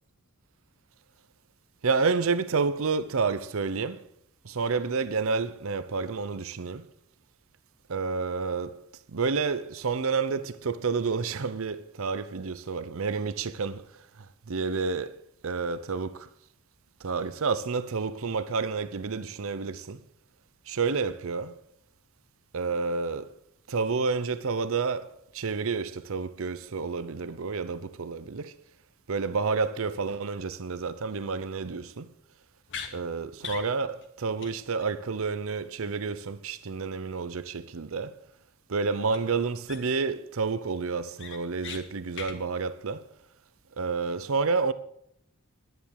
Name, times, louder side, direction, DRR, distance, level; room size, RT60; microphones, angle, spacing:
voice 1, 1.8-4.0 4.5-6.8 7.9-8.8 9.1-13.8 14.5-15.1 15.4-16.2 17.0-20.0 20.7-21.5 22.5-23.3 23.7-25.1 25.3-28.5 29.1-32.1 32.9-38.1 38.7-43.0 43.8-44.7, right 4 dB, 65° right, 0.7 m, -29 dB
sound 1, 32.7-32.9 33.4-33.7 34.0-34.1 34.4-34.5 34.8-34.9 39.1-39.2 39.7-40.0 40.4-40.5 40.9-41.8 42.1-42.4, left 6 dB, 60° left, 1.7 m, -39 dB
11.0 x 10.5 x 6.4 m
head